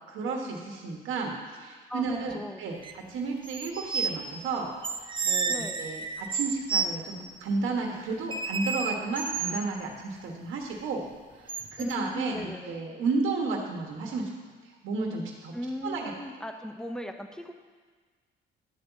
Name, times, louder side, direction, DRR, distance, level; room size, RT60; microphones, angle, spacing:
voice 1, 0.1-4.7 5.2-11.0 11.4-14.3 14.8-15.5 15.8-16.1, right 4 dB, 85° right, 0 dB, 1.4 m, -32 dB
voice 2, 2.3-2.6 5.5-5.8 11.8-12.8 15.5-17.5, equal, 5° left, 5 dB, 0.8 m, -37 dB
sound 1, 2.8-2.9 3.4-4.2 4.8-6.9 8.3-9.7 11.5-11.9, right 5 dB, 25° right, 0.5 m, -30 dB
10.5 x 4.0 x 7.2 m, 1.4 s
cardioid pair, 90°, 20 cm